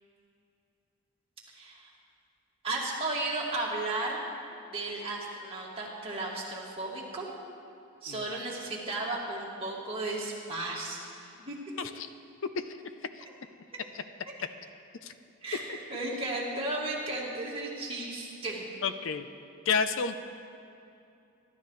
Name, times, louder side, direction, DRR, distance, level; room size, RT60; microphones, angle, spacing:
voice 1, 1.5-1.8 2.6-4.3 4.7-7.3 8.0-11.6 15.4-18.7, right 2 dB, 25° right, -4 dB, 2.2 m, -34 dB
voice 2, 18.8-19.3 19.7-20.2, left 5 dB, 65° left, 10 dB, 0.5 m, -30 dB
24.0 x 12.0 x 3.2 m, 2.7 s
head